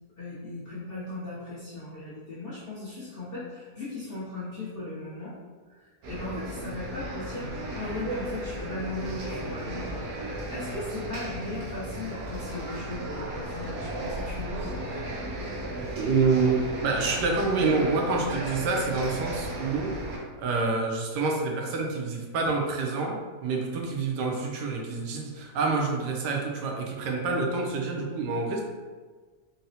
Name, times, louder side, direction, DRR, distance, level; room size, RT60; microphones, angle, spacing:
voice 1, 0.2-5.3 5.7-9.9 10.5-14.7, left 2 dB, 55° left, -9 dB, 0.6 m, -37 dB
sound 1, 6.0-20.2, right 1 dB, 70° right, 1.0 m, -35 dB
voice 2, 16.0-19.9 20.4-28.6, right 4 dB, 90° right, 0 dB, 1.2 m, -27 dB
3.8 x 2.0 x 2.7 m, 1.4 s
omnidirectional pair, 1.7 m